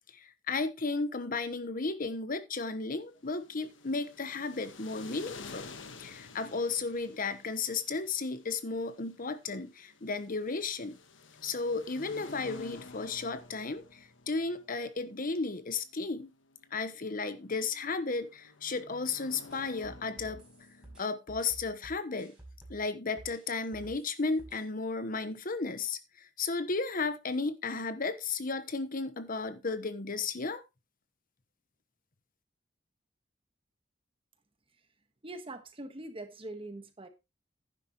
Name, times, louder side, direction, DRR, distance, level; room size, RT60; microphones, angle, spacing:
voice 1, 0.1-5.7 6.0-11.0 11.4-16.3 16.7-20.4 21.0-22.3 22.7-30.6, left 4 dB, 45° left, 1.1 m, -34 dB
sound 1, 3.1-21.0, left 3 dB, 75° left, 1.3 m, -51 dB
sound 2, 19.5-22.8 23.2-24.6, right 2 dB, 5° right, 5.7 m, -51 dB
voice 2, 35.2-37.1, right 2 dB, 30° right, 1.4 m, -43 dB
11.0 x 10.0 x 3.0 m
head